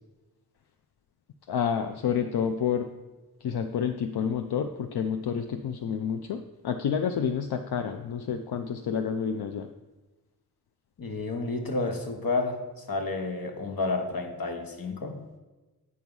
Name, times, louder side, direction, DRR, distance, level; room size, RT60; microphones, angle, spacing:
voice 1, 1.5-2.9 3.4-9.7, left 7 dB, 85° left, 7 dB, 0.5 m, -29 dB
voice 2, 11.0-15.2, left 3 dB, 65° left, 4 dB, 1.2 m, -30 dB
8.4 x 4.6 x 5.4 m, 1.2 s
wide cardioid pair, 60°, 38 cm